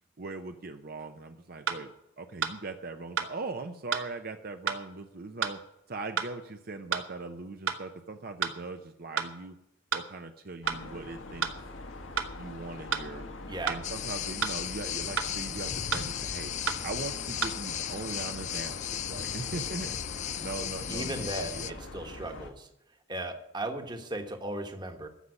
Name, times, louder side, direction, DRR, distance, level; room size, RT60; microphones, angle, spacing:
voice 1, 0.2-1.9 2.2-5.6 5.9-9.6 9.9-11.5 12.0-13.2 13.6-16.5 16.8-20.0 20.4-21.8, right 3 dB, 50° right, 6 dB, 0.7 m, -40 dB
sound 1, 1.0-1.1 1.7-1.8 2.4-2.5 3.2-3.3 3.9-4.1 4.7-4.8 5.4-5.5 6.2-6.3 6.9-7.1 7.7-7.8 8.4-8.6 9.2-9.3 9.9-10.0 10.7-10.8 11.4-11.6 12.2-12.3 12.9-13.1 13.7-13.8 14.4-14.6 15.2-15.3 15.9-16.1 16.7-16.8 17.4-17.5, right 6 dB, 90° right, 1.3 m, -30 dB
sound 2, 10.6-22.5, left 2 dB, 80° left, 1.7 m, -43 dB
voice 2, 13.5-13.8 20.9-22.7 23.1-25.1, right 1 dB, 20° right, 6 dB, 1.3 m, -36 dB
sound 3, 13.8-21.7, left 10 dB, 35° left, 0.4 m, -36 dB
14.5 x 5.6 x 9.7 m, 0.86 s
head